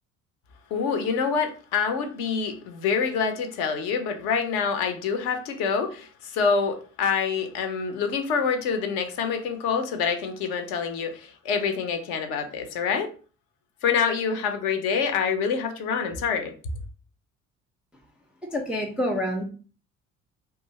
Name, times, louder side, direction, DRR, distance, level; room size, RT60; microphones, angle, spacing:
voice 1, 0.7-13.1 13.8-16.5, left 6 dB, 55° left, 0.6 m, -26 dB
voice 2, 18.5-19.4, left 1 dB, 5° right, 0.3 m, -27 dB
2.4 x 2.3 x 2.8 m
figure-of-eight pair, 50°, 39 cm